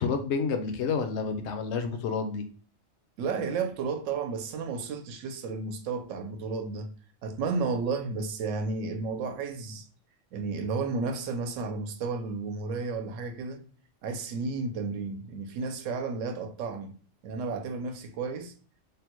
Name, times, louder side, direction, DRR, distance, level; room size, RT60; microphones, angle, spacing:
voice 1, 0.0-2.4, left 5 dB, 70° left, 0.8 m, -29 dB
voice 2, 3.2-6.9 7.2-9.9 10.3-13.6 14.0-16.9 17.2-18.5, right 4 dB, 85° right, 0.9 m, -32 dB
3.4 x 2.1 x 3.0 m
omnidirectional pair, 1.3 m